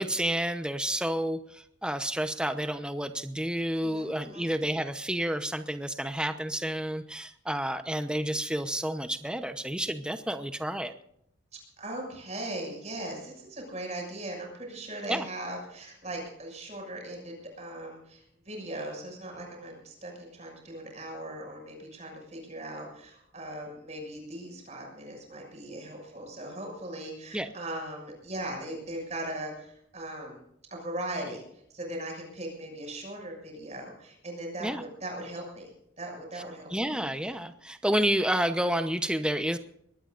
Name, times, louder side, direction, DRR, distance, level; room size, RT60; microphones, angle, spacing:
voice 1, 0.0-10.9 15.1-15.3 27.3-27.5 34.6-34.8 36.7-39.6, right 1 dB, 5° right, 8 dB, 0.8 m, -30 dB
voice 2, 3.8-4.5 11.5-30.4 30.7-31.4 31.7-36.8, right 1 dB, 35° right, 1 dB, 6.6 m, -39 dB
23.0 x 19.0 x 2.6 m, 0.72 s
head